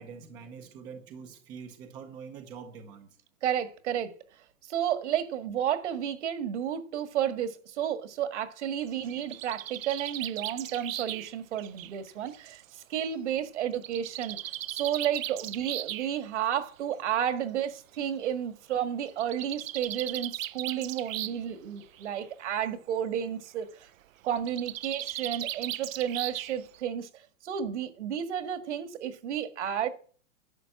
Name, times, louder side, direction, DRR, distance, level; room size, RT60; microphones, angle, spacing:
voice 1, 0.0-3.2, right 6 dB, 10° right, 0.6 m, -45 dB
voice 2, 3.4-4.2 4.7-14.4 14.7-23.9 24.2-27.1 27.4-29.9, right 9 dB, 60° right, 1.8 m, -32 dB
Bird, 8.9-12.6 13.7-16.1 17.2-17.3 17.6-17.7 17.9-18.0 19.1-21.5 21.8-22.3 24.3-26.8, right 13 dB, 80° right, 0.6 m, -37 dB
11.0 x 6.7 x 7.5 m
hypercardioid pair, 165°, 39 cm